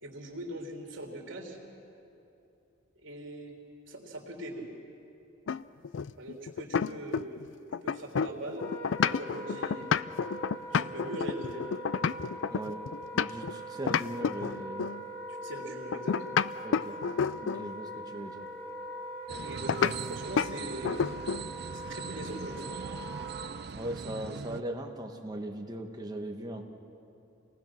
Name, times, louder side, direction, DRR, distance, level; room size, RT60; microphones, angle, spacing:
voice 1, 0.0-1.6 3.0-3.5 3.9-4.7 6.2-7.4 7.8-8.7 9.0-9.9 10.7-11.6 15.3-16.4 19.4-21.0 21.7-22.8, right 1 dB, 75° right, 0 dB, 3.4 m, -41 dB
sound 1, 5.5-7.4 7.7-13.5 13.9-15.0 15.9-17.7 19.7-20.0 20.4-20.5 20.8-21.5, left 6 dB, 70° left, 0.4 m, -30 dB
Wind instrument woodwind instrument, 8.5-23.5, right 1 dB, 10° left, 3.2 m, -42 dB
voice 2, 12.5-14.9 16.6-17.0 17.4-18.5 23.7-26.7, right 1 dB, 20° right, 3 dB, 1.4 m, -39 dB
sound 2, 19.3-24.6, right 5 dB, 55° right, 0.4 m, -41 dB
27.5 x 19.5 x 6.1 m, 2.8 s
head